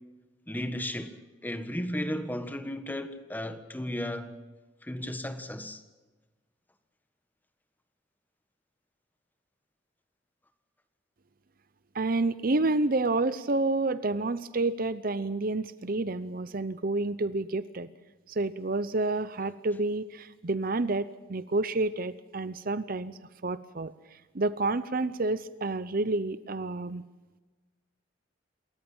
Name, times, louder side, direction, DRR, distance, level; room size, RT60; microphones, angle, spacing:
voice 1, 0.5-1.2 1.4-4.4 4.8-5.8, left 1 dB, 10° left, 1.5 m, -34 dB
voice 2, 11.9-17.9 18.3-23.2 23.4-23.9 24.3-27.0, right 2 dB, 50° right, 0.8 m, -29 dB
27.5 x 14.5 x 8.8 m
head